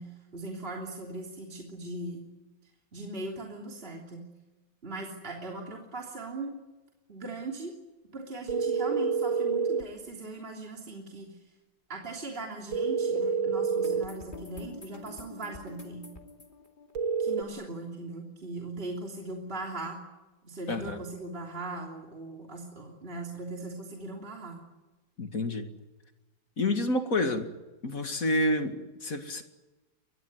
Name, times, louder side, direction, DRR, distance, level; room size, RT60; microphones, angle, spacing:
voice 1, 0.0-2.2 2.9-4.2 4.8-6.6 7.1-7.7 8.1-11.4 11.9-16.1 17.2-20.0 20.4-24.6, right 2 dB, 30° right, 0 dB, 3.4 m, -39 dB
sound 1, 8.5-9.9 12.7-14.1 17.0-17.4, right 5 dB, 75° right, 2.3 m, -28 dB
sound 2, 13.8-17.6, left 3 dB, 25° left, 2.6 m, -47 dB
voice 2, 20.7-21.0 25.2-25.7 26.6-27.5 27.8-29.4, left 1 dB, 45° left, 6 dB, 2.5 m, -28 dB
23.5 x 20.0 x 9.6 m, 1.1 s
omnidirectional pair, 2.1 m